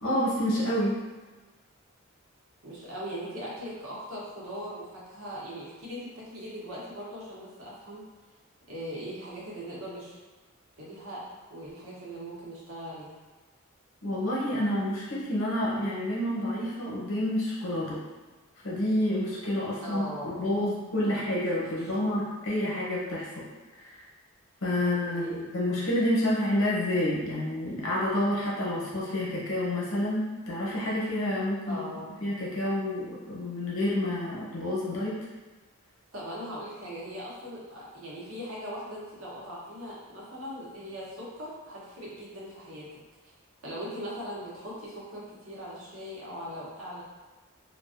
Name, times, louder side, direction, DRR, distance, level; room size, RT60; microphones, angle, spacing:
voice 1, 0.0-1.0 14.0-18.0 18.6-23.3 23.7-24.0 24.6-31.8 32.2-35.1, left 1 dB, 65° left, -5 dB, 0.8 m, -29 dB
voice 2, 2.6-8.0 8.7-10.2 10.8-13.1 19.8-20.6 21.0-21.1 21.8-21.9 25.0-25.4 31.7-32.1 36.1-43.3 43.6-47.0, equal, 70° right, -6 dB, 0.8 m, -40 dB
2.4 x 2.2 x 2.4 m, 1.3 s
head